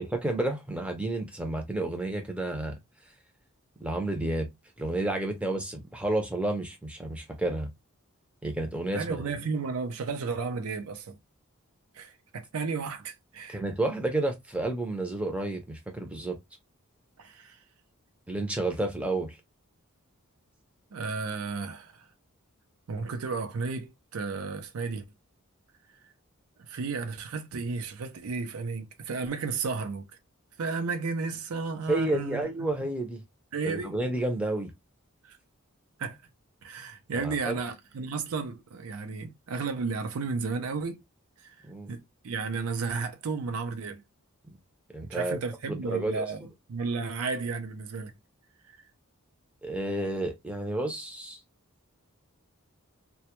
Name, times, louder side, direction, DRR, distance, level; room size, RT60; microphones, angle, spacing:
voice 1, 0.0-2.8 3.8-4.5 4.8-7.7 8.4-9.2 13.5-16.4 18.3-19.4 31.9-33.2 33.6-34.7 37.1-37.6 41.6-41.9 44.9-45.4 45.7-46.5 49.6-51.4, right 2 dB, 5° right, 0.5 m, -31 dB
voice 2, 8.9-11.2 11.9-13.6 17.2-17.6 20.9-22.1 22.9-25.0 26.6-30.0 30.6-32.5 33.5-34.0 35.2-35.4 36.0-36.2 36.6-41.0 41.4-44.0 45.0-46.4 46.7-48.1 48.7-48.8, right 4 dB, 80° right, 0.5 m, -33 dB
2.1 x 2.1 x 2.8 m
head